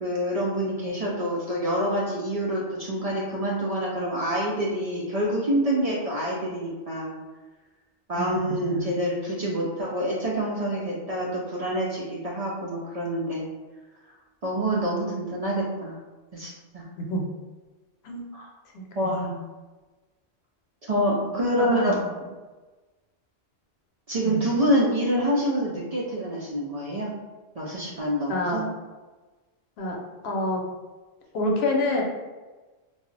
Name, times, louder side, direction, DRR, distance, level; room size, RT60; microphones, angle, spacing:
voice 1, 0.0-7.1 8.1-13.5 14.4-16.0 16.3-16.8 18.3-18.5 18.9-19.4 20.8-22.0 24.1-27.1 27.6-28.7, equal, 50° right, -4 dB, 0.4 m, -26 dB
voice 2, 8.1-8.8 17.0-17.2 18.0-18.2 18.7-18.8 21.7-22.0 24.2-24.4 28.3-28.6 29.8-30.0 30.2-30.6 31.3-32.0, left 1 dB, 75° left, 0 dB, 0.8 m, -27 dB
2.3 x 2.0 x 3.8 m, 1.2 s
omnidirectional pair, 1.1 m